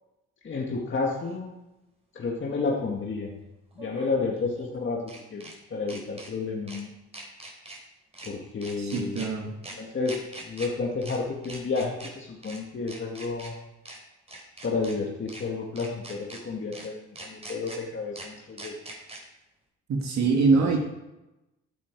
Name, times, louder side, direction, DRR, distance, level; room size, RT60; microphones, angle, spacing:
voice 1, 0.4-1.6 2.1-3.4 3.8-6.9 8.2-9.3 9.8-13.5 14.6-18.8 20.6-20.8, left 4 dB, 40° left, -1 dB, 2.0 m, -31 dB
sound 1, 1.2-1.3 3.7-5.5 5.9-6.3 6.7-6.8 7.1-7.8 8.1-8.3 8.6-9.3 9.6-9.7 10.0-10.7 11.0-11.2 11.4-12.1 12.4-12.6 12.9-13.5 13.8-14.0 14.3-14.9 15.3-15.4 15.8-16.4 16.7-16.9 17.2-17.8 18.1-18.3 18.6-19.2, right 2 dB, 20° right, 4.0 m, -42 dB
voice 2, 8.8-9.5 19.9-20.8, right 4 dB, 60° right, 0 dB, 2.1 m, -23 dB
15.0 x 9.2 x 4.7 m, 0.96 s
cardioid pair, 90°, 30 cm